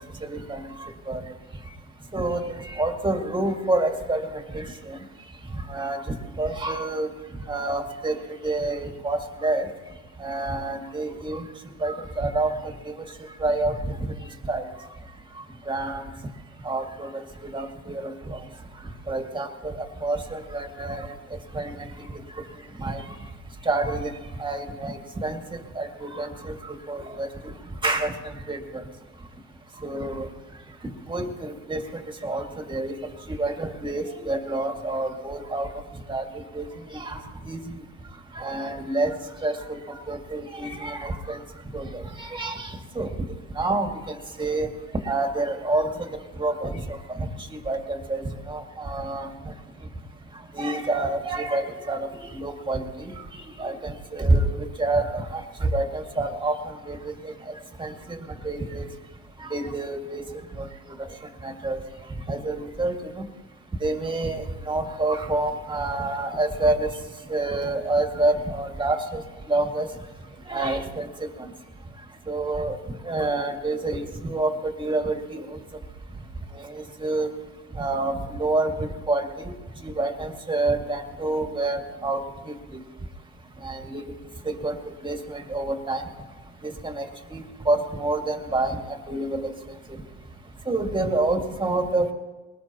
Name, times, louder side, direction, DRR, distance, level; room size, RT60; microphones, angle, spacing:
voice 1, 0.2-0.6 1.1-1.2 2.1-4.3 4.5-5.0 5.7-6.0 6.4-7.1 7.5-8.2 8.4-9.7 10.2-11.4 11.8-12.5 12.8-12.9 13.4-13.9 14.5-14.6 15.7-16.1 16.6-18.4 19.1-21.1 21.5-21.9 22.8-23.0 23.7-24.1 24.4-25.4 25.8-27.3 27.8-28.1 28.5-28.6 29.8-30.3 30.8-31.8 32.2-32.9 33.3-35.7 36.1-36.2 36.5-36.7 36.9-37.2 37.5-37.6 38.4-39.1 39.4-39.8 40.1-41.4 41.7-42.7 43.0-43.1 43.6-43.9 44.4-44.7 45.1-46.1 46.4-46.8 47.1-47.3 47.7-49.3 50.5-53.1 53.6-56.6 56.9-57.3 57.8-58.2 58.4-58.9 59.4-60.2 60.6-60.7 61.4-61.8 62.3-63.3 63.8-66.9 67.3-69.2 69.5-69.9 70.5-71.1 72.3-72.8 73.1-75.5 76.7-77.3 77.8-79.5 79.8-82.2 82.5-82.8 83.6-84.0 84.5-86.0 86.6-87.1 87.3-89.5 90.7-92.1, right 2 dB, 15° right, 4 dB, 2.1 m, -27 dB
22.5 x 19.5 x 3.0 m, 1.2 s
supercardioid pair, 90°, 32 cm